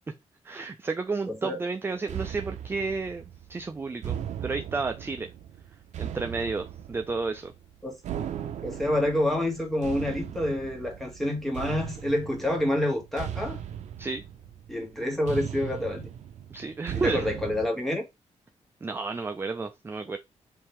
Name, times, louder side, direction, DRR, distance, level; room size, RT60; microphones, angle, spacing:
voice 1, 0.4-3.2 3.5-5.3 6.0-7.5 14.0-14.2 16.5-17.3 18.8-20.2, right 4 dB, 20° right, 0.4 m, -31 dB
voice 2, 1.3-1.6 7.8-8.0 8.6-13.6 14.7-16.1 17.0-18.0, left 1 dB, ahead, 1.4 m, -28 dB
sound 1, 2.1-17.7, right 9 dB, 85° right, 0.5 m, -38 dB
3.6 x 2.8 x 4.3 m
wide cardioid pair, 140°, 12 cm